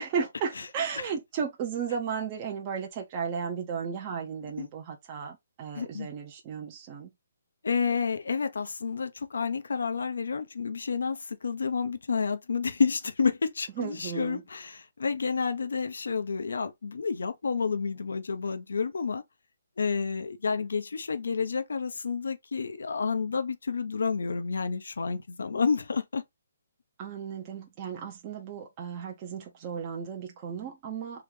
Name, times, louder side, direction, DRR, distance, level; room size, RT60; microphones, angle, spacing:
voice 1, 0.0-7.1 13.8-14.4 27.0-31.2, right 6 dB, 20° right, 0.6 m, -34 dB
voice 2, 5.7-6.1 7.6-19.2 19.8-26.2, left 5 dB, 80° left, 0.8 m, -30 dB
3.5 x 3.4 x 3.2 m
hypercardioid pair, 175°, 0 cm